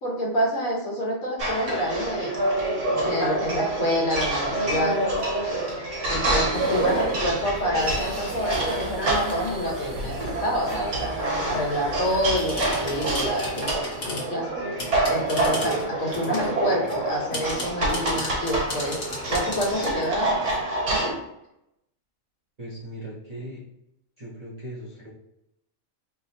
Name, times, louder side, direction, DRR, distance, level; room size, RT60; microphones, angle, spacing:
voice 1, 0.0-2.3 3.0-5.0 6.1-11.1 11.5-14.5 15.1-20.5 20.9-21.2, equal, 70° left, -3 dB, 1.5 m, -27 dB
sound 1, 1.4-21.1, right 2 dB, 60° right, 1.4 m, -27 dB
sound 2, 2.5-2.8 3.6-3.9 4.9-5.8 6.2-6.8 7.1-8.9 12.3-14.3 14.8-16.6 16.9-20.6, left 1 dB, 45° left, 1.2 m, -37 dB
sound 3, 6.5-13.3, right 1 dB, 85° right, 1.1 m, -40 dB
voice 2, 22.6-23.6 24.2-25.1, right 1 dB, 40° right, -7 dB, 0.6 m, -38 dB
3.3 x 2.0 x 4.0 m, 0.85 s
omnidirectional pair, 1.5 m